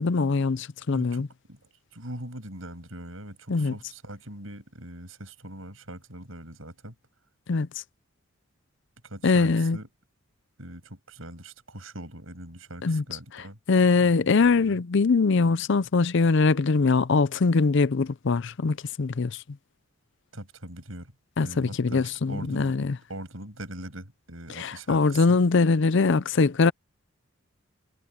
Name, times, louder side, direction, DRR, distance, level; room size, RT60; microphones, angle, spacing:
voice 1, 0.0-1.3 3.5-3.7 7.5-7.7 9.2-9.8 12.8-13.0 13.7-19.4 21.4-23.0 24.5-26.7, left 4 dB, 60° left, 0.5 m, -22 dB
voice 2, 0.9-1.2 1.5-7.0 9.0-9.9 10.6-13.6 14.0-14.1 14.4-14.8 20.3-21.1 21.4-22.8 23.1-25.4, right 1 dB, 70° right, 7.4 m, -41 dB
head